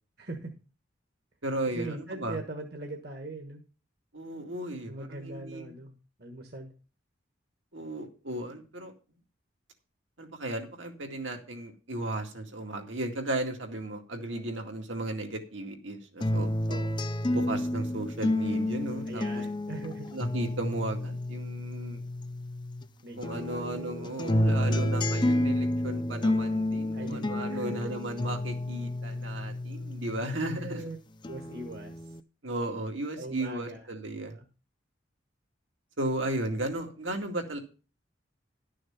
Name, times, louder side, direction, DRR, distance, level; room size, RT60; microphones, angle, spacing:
voice 1, 0.2-0.5 1.7-3.6 4.9-5.9 6.2-6.7 16.7-17.1 19.1-20.1 23.0-24.2 26.9-27.9 30.6-31.0 31.3-32.0 33.1-33.8 34.1-34.4, right 2 dB, 55° right, 3 dB, 1.4 m, -41 dB
voice 2, 1.4-2.4 4.1-5.7 7.7-8.9 10.2-16.5 17.3-19.4 20.1-22.0 23.2-30.8 32.4-34.3 36.0-37.6, right 1 dB, 80° right, 3 dB, 2.2 m, -35 dB
sound 1, 16.2-22.9 23.2-30.9 31.2-32.2, left 1 dB, 25° left, 0.5 m, -30 dB
12.0 x 6.4 x 5.7 m, 0.35 s
head